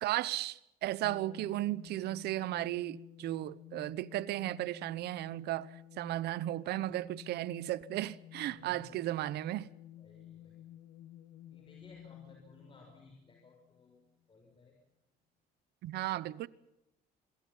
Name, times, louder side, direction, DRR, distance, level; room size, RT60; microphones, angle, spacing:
voice 1, 0.0-5.7 6.0-9.7 15.8-16.5, right 15 dB, 75° right, 1.0 m, -35 dB
sound 1, 1.0-13.9, left 12 dB, 70° left, 2.2 m, -53 dB
voice 2, 8.5-9.1 10.0-10.6 11.5-14.8, left 3 dB, 30° left, 6.5 m, -58 dB
26.5 x 22.5 x 5.6 m
cardioid pair, 110°, 17 cm